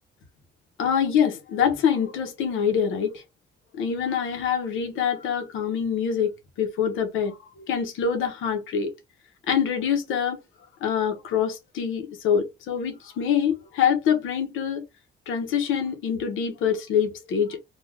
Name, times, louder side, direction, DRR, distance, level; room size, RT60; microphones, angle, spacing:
voice 1, 0.8-3.2 3.8-8.9 9.5-10.4 10.8-14.8 15.3-17.6, left 7 dB, 85° left, 0.9 m, -25 dB
2.4 x 2.4 x 3.2 m
cardioid pair, 90°, 20 cm